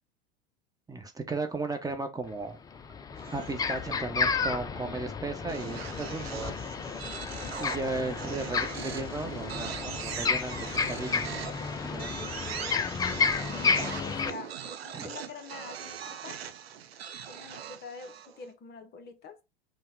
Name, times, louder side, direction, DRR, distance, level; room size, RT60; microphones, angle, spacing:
voice 1, 0.9-2.6 3.3-6.4 7.6-10.6 10.8-11.3 11.9-12.3 14.9-15.1, right 3 dB, 10° right, 0.8 m, -35 dB
sound 1, 2.2-2.3 2.7-14.3, left 5 dB, 15° left, 0.4 m, -32 dB
sound 2, 3.2-3.9 5.5-18.4, right 9 dB, 85° right, 0.7 m, -41 dB
voice 2, 13.5-16.5 17.3-19.4, left 5 dB, 35° left, 0.7 m, -46 dB
5.6 x 2.1 x 3.8 m
hypercardioid pair, 85°, 30 cm